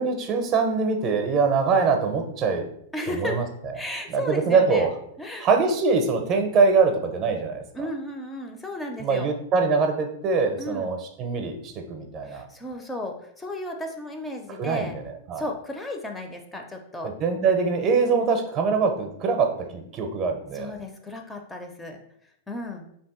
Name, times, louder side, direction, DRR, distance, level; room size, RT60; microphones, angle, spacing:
voice 1, 0.0-2.7 3.2-3.4 4.1-4.9 5.4-7.9 9.0-12.4 14.6-15.5 17.0-20.7, right 4 dB, 35° right, 5 dB, 0.5 m, -23 dB
voice 2, 2.9-3.4 3.7-4.9 5.2-5.5 7.7-9.3 10.6-10.9 12.2-14.9 15.4-17.2 20.5-22.0 22.5-22.9, left 1 dB, 10° left, 3 dB, 0.4 m, -34 dB
2.7 x 2.5 x 3.5 m, 0.72 s
hypercardioid pair, 105°, 0 cm